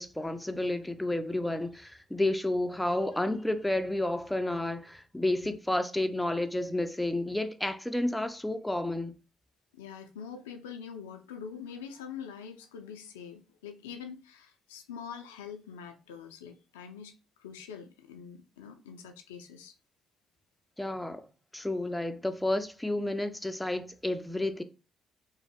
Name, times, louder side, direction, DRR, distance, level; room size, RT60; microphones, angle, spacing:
voice 1, 0.0-9.2 20.8-21.3 21.5-24.6, left 1 dB, 10° left, 0.4 m, -31 dB
voice 2, 9.7-19.8, left 7 dB, 90° left, 0.3 m, -44 dB
3.0 x 2.0 x 2.9 m
hypercardioid pair, 50°, 0 cm